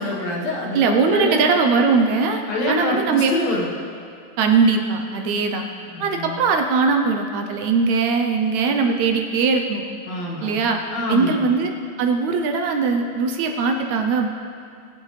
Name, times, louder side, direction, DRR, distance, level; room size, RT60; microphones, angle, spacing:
voice 1, 0.0-1.5 2.5-3.7 5.9-6.4 10.1-10.6 10.9-11.4, left 1 dB, 60° left, -3 dB, 2.6 m, -25 dB
voice 2, 0.7-3.3 4.4-5.6 6.0-9.9 10.4-10.8 11.1-11.7 12.0-14.3, right 4 dB, 75° right, 4 dB, 1.9 m, -20 dB
20.0 x 8.1 x 3.3 m, 2.3 s
omnidirectional pair, 3.5 m